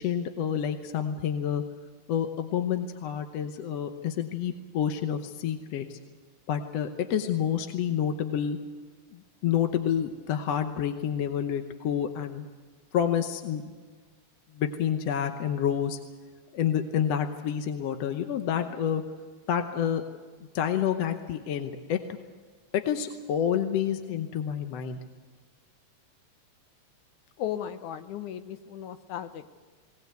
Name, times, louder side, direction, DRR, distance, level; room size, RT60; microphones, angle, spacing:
voice 1, 0.0-1.6 2.1-6.0 6.5-8.6 9.1-12.5 12.9-13.6 14.6-16.0 16.5-19.0 19.5-20.0 20.5-22.0 22.7-25.0, left 9 dB, 65° left, 6 dB, 1.9 m, -28 dB
voice 2, 27.4-29.5, left 10 dB, 90° left, 9 dB, 2.5 m, -36 dB
21.0 x 19.0 x 8.1 m, 1.4 s
omnidirectional pair, 3.3 m